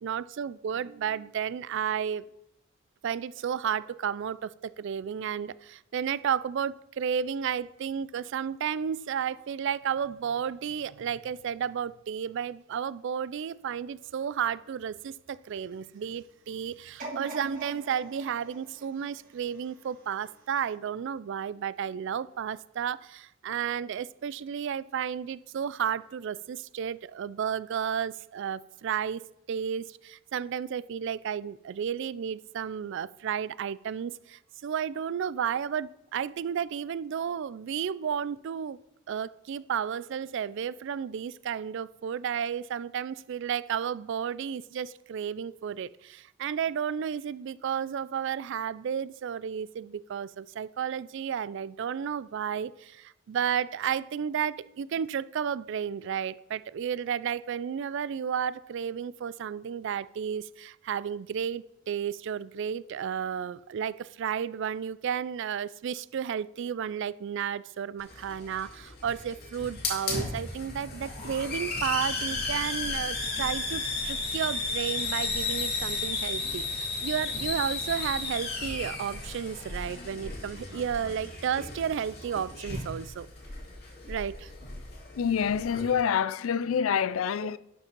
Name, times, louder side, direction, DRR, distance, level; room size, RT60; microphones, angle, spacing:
voice 1, 0.0-2.2 3.0-29.2 29.5-38.8 39.1-83.3 84.1-84.5, right 8 dB, 60° right, 0.3 m, -32 dB
sound 1, 17.0-20.1 20.6-20.7, right 2 dB, 40° right, 2.2 m, -43 dB
Hiss, 68.0-85.9, left 3 dB, 50° left, 2.4 m, -34 dB
voice 2, 85.2-87.6, left 7 dB, 90° left, 0.4 m, -26 dB
11.5 x 5.1 x 5.3 m
head